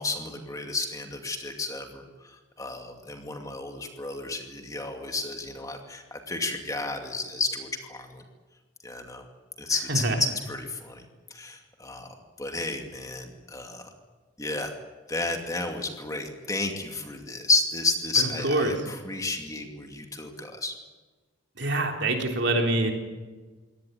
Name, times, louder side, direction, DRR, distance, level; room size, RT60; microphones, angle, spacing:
voice 1, 0.0-8.2 8.8-9.2 9.6-13.9 14.4-14.8 15.1-20.7, left 3 dB, 15° left, 4 dB, 2.4 m, -32 dB
voice 2, 21.6-22.9, right 2 dB, 55° right, 3 dB, 3.7 m, -25 dB
23.0 x 18.0 x 9.3 m, 1.3 s
head